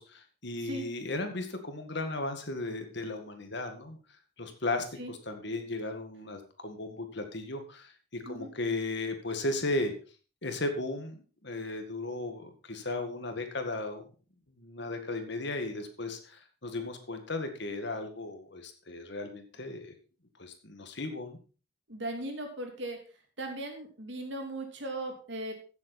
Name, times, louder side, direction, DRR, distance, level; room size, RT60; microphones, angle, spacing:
voice 1, 0.0-4.0 4.4-9.9 10.4-14.1 14.6-19.9 20.4-21.4, left 2 dB, 55° left, 6 dB, 2.0 m, -36 dB
voice 2, 21.9-23.0 23.4-25.5, right 1 dB, 60° right, 3 dB, 3.1 m, -38 dB
15.0 x 7.6 x 4.2 m, 0.37 s
head